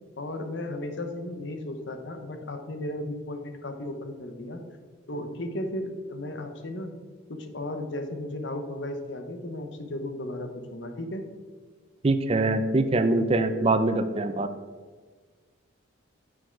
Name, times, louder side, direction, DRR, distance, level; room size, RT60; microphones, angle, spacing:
voice 1, 0.2-4.6 5.1-6.9 7.3-11.2, left 1 dB, 60° left, 6 dB, 0.9 m, -35 dB
voice 2, 12.0-14.5, right 2 dB, 30° right, 10 dB, 0.4 m, -23 dB
6.8 x 6.1 x 4.6 m, 1.5 s
head